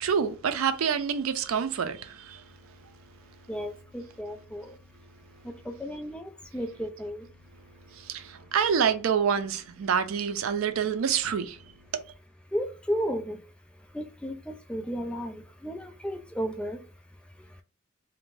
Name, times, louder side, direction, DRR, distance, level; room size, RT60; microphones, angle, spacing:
voice 1, 0.0-2.4 2.8-2.9 7.9-11.6 11.9-12.0, right 7 dB, 90° right, 0.4 m, -27 dB
voice 2, 3.5-4.7 5.7-7.2 12.5-13.4 13.9-16.8, equal, 5° left, 0.3 m, -33 dB
2.5 x 2.1 x 3.1 m
head